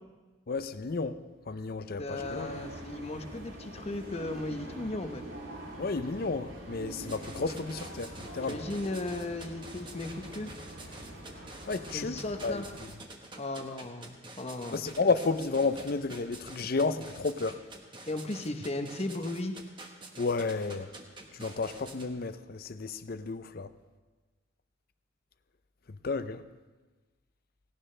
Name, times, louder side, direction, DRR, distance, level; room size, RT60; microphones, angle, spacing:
voice 1, 0.5-1.2 1.5-2.5 5.8-8.7 11.7-12.6 14.7-17.6 20.2-20.9 21.3-23.7 25.9-26.4, left 4 dB, 50° left, 0.6 m, -32 dB
voice 2, 2.0-5.2 8.5-10.5 11.9-12.7 13.4-14.8 18.1-19.6, left 2 dB, 30° left, 0.9 m, -36 dB
sound 1, 2.1-12.8, right 1 dB, 80° right, 3.1 m, -44 dB
sound 2, 7.0-22.1, right 2 dB, 25° right, 1.3 m, -47 dB
17.5 x 17.5 x 3.3 m
head